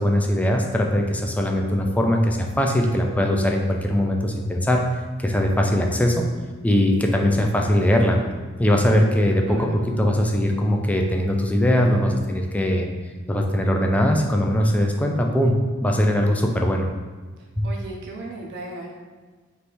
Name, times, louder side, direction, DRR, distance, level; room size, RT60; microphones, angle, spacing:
voice 1, 0.0-4.8 5.2-6.3 6.6-8.2 8.6-9.7 10.0-12.9 13.3-16.9 17.6-17.7, equal, 5° left, 2 dB, 0.3 m, -20 dB
voice 2, 9.5-9.9 17.6-18.9, right 2 dB, 60° right, -1 dB, 0.6 m, -35 dB
3.3 x 2.7 x 4.4 m, 1.4 s
head